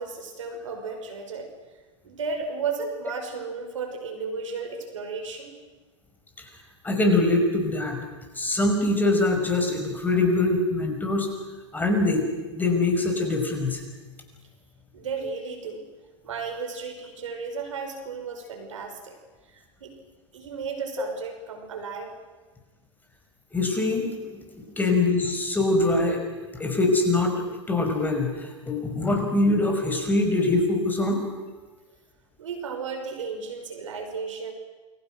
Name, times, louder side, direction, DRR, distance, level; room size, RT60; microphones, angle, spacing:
voice 1, 0.0-1.5 2.0-5.5 14.9-15.8 16.2-19.2 19.5-19.9 20.3-22.1 32.4-34.5, right 5 dB, 75° right, 5 dB, 5.8 m, -34 dB
voice 2, 6.8-8.0 8.4-11.3 11.7-12.2 12.5-13.8 23.5-24.4 24.8-26.2 26.6-27.3 27.7-31.2, left 2 dB, 10° left, 3 dB, 5.5 m, -23 dB
29.0 x 23.0 x 6.3 m, 1.3 s
hypercardioid pair, 105°, 16 cm